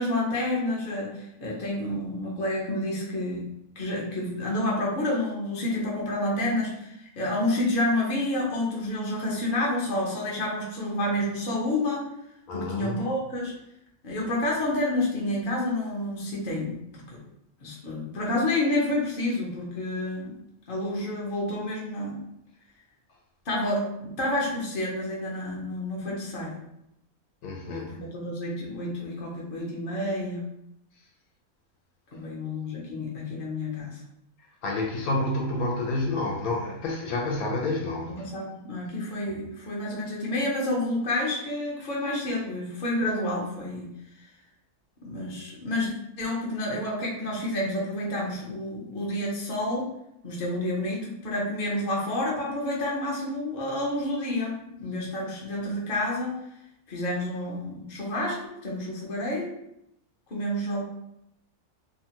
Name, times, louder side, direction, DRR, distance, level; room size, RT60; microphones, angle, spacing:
voice 1, 0.0-3.5 3.8-12.1 12.5-13.5 14.0-17.2 17.6-20.4 20.7-22.2 23.5-26.6 27.6-30.4 32.1-34.0 38.1-43.9 45.0-45.9 46.2-49.9 50.2-56.4 56.9-59.5 60.3-60.8, left 1 dB, 45° left, -3 dB, 0.7 m, -29 dB
voice 2, 12.5-13.0 27.4-28.0 34.6-38.3, left 2 dB, 75° left, -1 dB, 1.1 m, -29 dB
2.8 x 2.3 x 2.8 m, 0.81 s
omnidirectional pair, 1.6 m